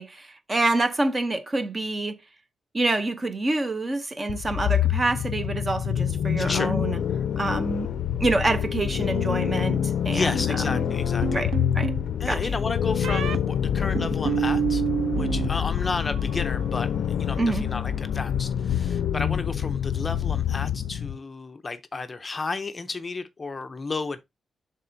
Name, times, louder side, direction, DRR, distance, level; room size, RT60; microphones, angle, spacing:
voice 1, 0.0-2.2 2.7-7.0 7.4-7.9 8.2-10.8 11.3-11.9 12.3-12.6 17.4-17.6, right 2 dB, 20° right, 0.7 m, -27 dB
sound 1, 4.3-21.2, left 9 dB, 80° left, 0.4 m, -26 dB
voice 2, 6.4-6.7 10.1-11.4 12.2-14.8 15.1-24.2, left 3 dB, 25° left, 0.5 m, -32 dB
sound 2, 11.2-12.0 13.0-13.4 14.0-15.5 15.8-16.4, right 8 dB, 85° right, 0.4 m, -27 dB
11.0 x 3.7 x 2.6 m
wide cardioid pair, 170°, 0 cm